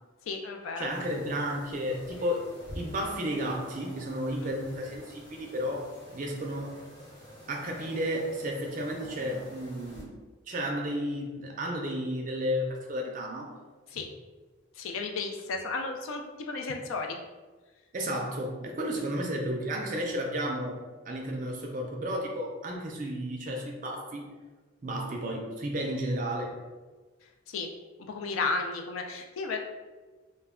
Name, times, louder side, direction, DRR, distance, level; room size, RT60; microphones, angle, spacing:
voice 1, 0.3-0.9 13.9-14.1 14.8-17.2 27.5-27.7 28.1-29.6, left 4 dB, 70° left, 3 dB, 0.4 m, -33 dB
voice 2, 0.8-2.5 2.7-6.8 7.5-10.2 10.5-13.5 17.9-20.8 21.1-24.3 24.8-26.5, equal, 40° right, 1 dB, 0.4 m, -32 dB
sound 1, 0.9-10.0, left 1 dB, 50° left, 0.7 m, -48 dB
2.2 x 2.1 x 3.5 m, 1.3 s
head